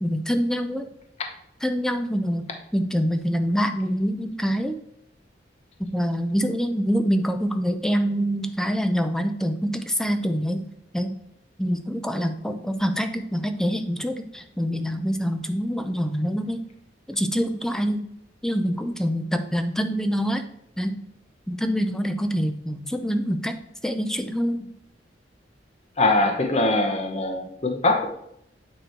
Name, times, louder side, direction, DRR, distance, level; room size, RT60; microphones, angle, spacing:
voice 1, 0.0-0.9 1.6-2.5 2.7-4.8 5.8-10.7 10.9-11.2 11.6-16.6 17.1-18.1 18.4-20.4 20.8-21.0 21.5-23.6 23.8-24.7, equal, 5° left, 7 dB, 0.4 m, -25 dB
voice 2, 26.0-28.1, left 2 dB, 35° left, 3 dB, 0.8 m, -22 dB
9.0 x 3.1 x 4.5 m, 0.75 s
head